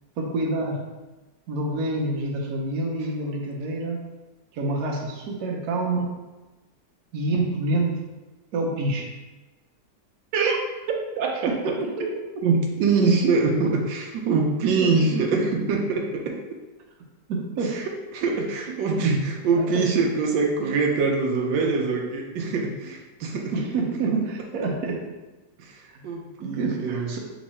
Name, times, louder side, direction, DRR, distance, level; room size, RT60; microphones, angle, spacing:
voice 1, 0.2-0.8 1.5-4.0 4.5-6.2 7.1-8.1 8.5-9.1 11.5-12.1 14.8-14.9 17.3-17.8 19.6-19.9 23.5-25.1 25.9-26.0 26.4-27.2, right 2 dB, 65° right, -1 dB, 1.2 m, -27 dB
voice 2, 12.4-16.4 17.7-23.5 25.6-27.1, right 4 dB, 85° right, 1 dB, 1.3 m, -24 dB
3.5 x 3.0 x 4.2 m, 1.1 s
omnidirectional pair, 1.9 m